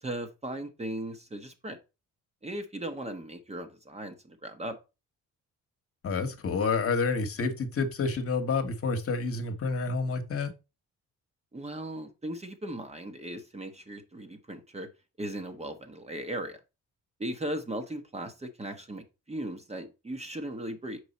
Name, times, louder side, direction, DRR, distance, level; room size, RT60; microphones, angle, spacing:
voice 1, 0.0-1.8 2.4-4.8 11.5-14.9 15.2-16.6 17.2-21.0, right 1 dB, 20° right, 1.0 m, -37 dB
voice 2, 6.0-10.5, left 4 dB, 50° left, 1.2 m, -29 dB
5.4 x 4.8 x 4.1 m
cardioid pair, 90°, 30 cm